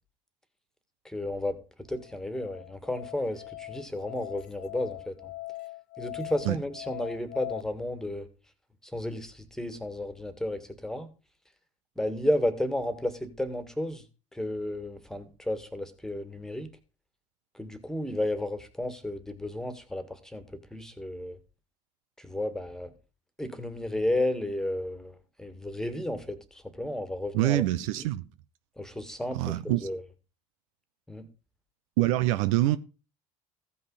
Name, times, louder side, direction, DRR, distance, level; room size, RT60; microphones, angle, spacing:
voice 1, 1.0-1.6 1.9-5.3 6.0-8.3 8.8-11.1 11.9-14.0 14.3-16.7 17.5-20.4 20.7-21.4 22.2-22.9 23.4-27.6 27.9-28.0 28.8-30.0 31.1-31.3, left 1 dB, 5° left, 1.8 m, -32 dB
Musical instrument, 1.9-7.6, left 19 dB, 60° left, 0.6 m, -41 dB
voice 2, 27.3-28.2 29.3-29.9 32.0-32.8, right 16 dB, 70° right, 0.6 m, -25 dB
15.0 x 5.5 x 4.0 m
hypercardioid pair, 65°, 17 cm